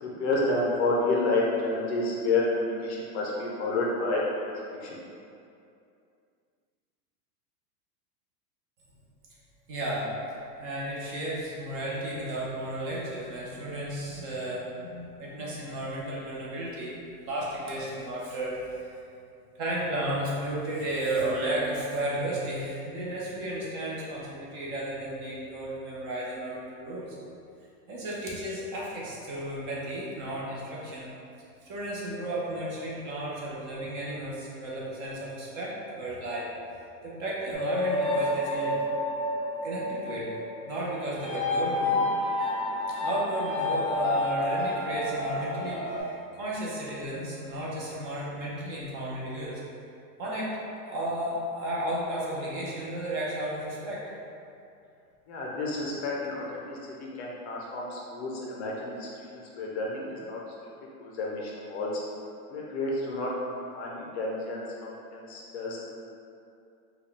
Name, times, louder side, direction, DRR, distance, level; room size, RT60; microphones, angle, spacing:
voice 1, 0.0-4.2 4.7-5.0 55.3-59.1 59.6-60.4 61.0-61.9 62.5-63.3 63.7-65.8, left 2 dB, 45° left, -3 dB, 0.5 m, -30 dB
voice 2, 9.7-10.1 10.6-18.9 19.5-27.2 27.9-31.1 31.6-36.5 37.0-38.7 39.6-42.0 42.4-42.5 43.0-49.6 50.2-50.5 50.8-54.0, right 1 dB, 35° right, -6 dB, 0.7 m, -33 dB
sound 1, 37.5-46.0, left 1 dB, ahead, 1.3 m, -29 dB
4.0 x 2.3 x 3.3 m, 2.6 s
supercardioid pair, 160°, 48 cm